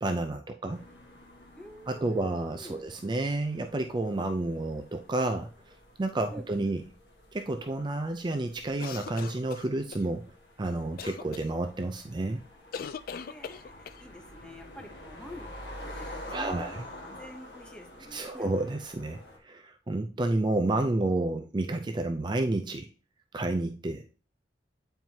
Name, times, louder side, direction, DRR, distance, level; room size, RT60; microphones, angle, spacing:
voice 1, 0.0-0.9 1.9-5.5 6.0-6.8 7.3-10.3 10.6-12.4 16.3-16.8 18.1-22.9 23.3-24.0, right 2 dB, 25° right, 6 dB, 0.4 m, -30 dB
sound 1, 0.7-19.4, left 1 dB, 70° left, 1.7 m, -48 dB
voice 2, 1.6-2.9 6.3-6.8 13.2-18.5, equal, 5° left, 3 dB, 0.8 m, -48 dB
sound 2, 8.8-10.0 11.0-11.5 12.7-14.0, left 6 dB, 55° left, 0.4 m, -40 dB
9.0 x 4.6 x 2.8 m, 0.37 s
head